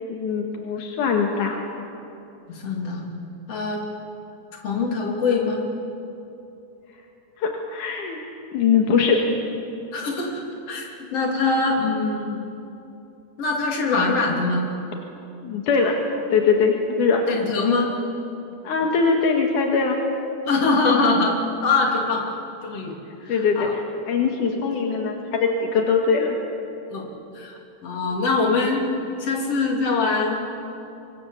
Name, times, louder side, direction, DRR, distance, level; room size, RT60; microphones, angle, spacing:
voice 1, 0.1-1.6 7.4-8.2 8.5-9.2 15.4-16.0 16.3-17.3 18.6-20.0 23.3-26.4, left 5 dB, 75° left, 2 dB, 3.1 m, -21 dB
voice 2, 2.5-3.1 3.5-3.8 4.6-5.7 9.9-12.4 13.4-14.7 17.3-17.9 20.4-21.4 21.6-22.2 22.6-22.9 23.2-23.7 26.9-27.1 27.3-28.9 29.2-30.4, left 3 dB, 50° left, 0 dB, 4.0 m, -23 dB
25.0 x 24.5 x 7.2 m, 2.8 s
omnidirectional pair, 3.6 m